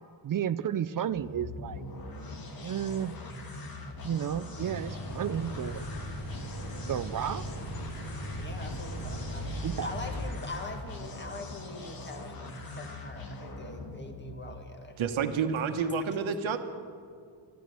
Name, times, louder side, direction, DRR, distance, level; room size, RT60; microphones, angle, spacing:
voice 1, 0.2-1.8 2.6-3.2 4.0-5.8 6.8-7.5 9.6-9.9, right 9 dB, 45° right, 14 dB, 0.4 m, -32 dB
sound 1, 1.0-14.8, left 2 dB, 45° left, 1.7 m, -42 dB
sound 2, 4.6-10.2, right 1 dB, 65° left, 3.6 m, -38 dB
voice 2, 8.4-15.0, left 3 dB, 20° left, 4 dB, 1.6 m, -43 dB
voice 3, 15.0-16.6, right 6 dB, 70° right, 7 dB, 1.1 m, -29 dB
12.5 x 12.0 x 8.5 m, 2.2 s
wide cardioid pair, 140°, 49 cm